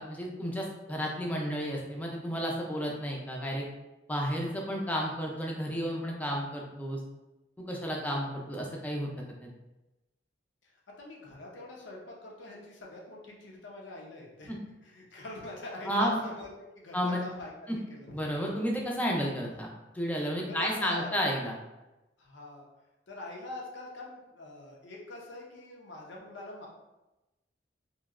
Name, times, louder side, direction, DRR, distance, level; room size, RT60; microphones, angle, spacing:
voice 1, 0.0-3.6 4.1-7.0 7.6-9.1 9.4-9.5 14.5-14.6 15.9-16.2 16.9-17.2 17.7-17.8 18.1-19.7 19.9-21.5, equal, 10° left, -1 dB, 0.4 m, -32 dB
voice 2, 11.0-14.5 14.8-16.5 16.7-18.3 20.5-21.1 22.2-22.6 23.1-26.7, left 2 dB, 85° left, -2 dB, 0.7 m, -44 dB
3.0 x 2.7 x 2.4 m, 1.0 s
head